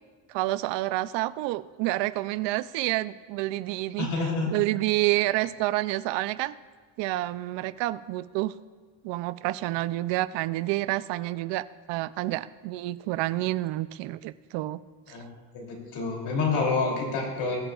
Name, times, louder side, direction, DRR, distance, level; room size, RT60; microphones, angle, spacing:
voice 1, 0.3-4.1 4.5-6.5 7.0-8.5 9.0-14.8, right 17 dB, 80° right, 16 dB, 0.6 m, -28 dB
voice 2, 4.0-4.5 15.1-15.3 15.5-17.5, left 4 dB, 70° left, -1 dB, 3.2 m, -28 dB
21.0 x 7.5 x 2.4 m, 1.5 s
cardioid pair, 120°, 42 cm